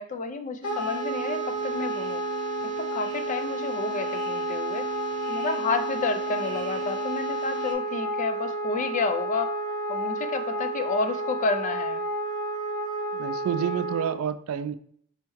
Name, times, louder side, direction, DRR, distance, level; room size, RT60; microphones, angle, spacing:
voice 1, 0.0-2.2 2.8-4.9 5.3-9.6 9.9-12.0, left 4 dB, 35° left, 9 dB, 0.3 m, -30 dB
Wind instrument woodwind instrument, 0.6-14.1, right 1 dB, 85° left, 0.8 m, -31 dB
sound 1, 0.6-7.7, right 5 dB, 25° right, 0.7 m, -41 dB
voice 2, 13.1-14.8, right 8 dB, 75° right, 15 dB, 0.3 m, -29 dB
4.3 x 3.5 x 3.1 m, 0.62 s
head